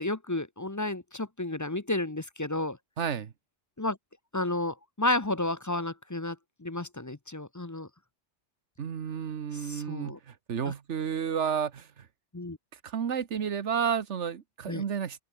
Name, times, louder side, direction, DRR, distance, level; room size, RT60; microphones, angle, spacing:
voice 1, 0.0-2.8 3.8-4.0 4.3-7.9 9.5-10.2 10.6-10.7 12.3-12.6 14.7-14.8, left 2 dB, 20° left, 0.7 m, -32 dB
voice 2, 3.0-3.3 8.8-12.1 12.8-15.2, right 7 dB, 80° right, 1.4 m, -31 dB
open air
omnidirectional pair, 1.2 m